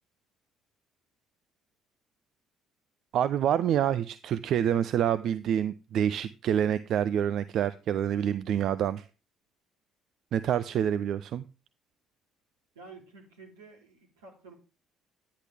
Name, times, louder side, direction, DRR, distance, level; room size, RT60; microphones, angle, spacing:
voice 1, 3.1-9.0 10.3-11.4, right 9 dB, 55° right, 0.5 m, -27 dB
voice 2, 12.7-14.5, right 4 dB, 80° right, 3.1 m, -50 dB
11.0 x 9.9 x 3.4 m
figure-of-eight pair, 50°, 0 cm